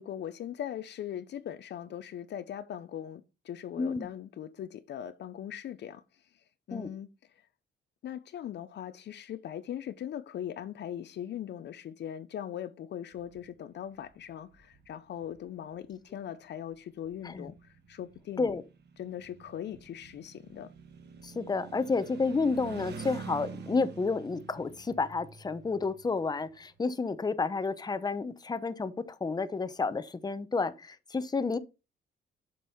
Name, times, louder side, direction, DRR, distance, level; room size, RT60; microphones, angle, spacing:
voice 1, 0.0-6.0 6.7-7.1 8.0-18.6 19.0-20.7, left 10 dB, 60° left, 0.6 m, -40 dB
voice 2, 3.8-4.1 6.7-6.9 17.2-17.5 18.4-18.6 21.2-31.6, left 4 dB, 20° left, 0.8 m, -30 dB
sound 1, 13.1-13.5 13.9-14.9 15.2-15.4 15.8-16.0 16.7-16.8 16.9-26.8, right 6 dB, 55° right, 1.5 m, -47 dB
7.7 x 5.4 x 4.1 m
cardioid pair, 90°, 20 cm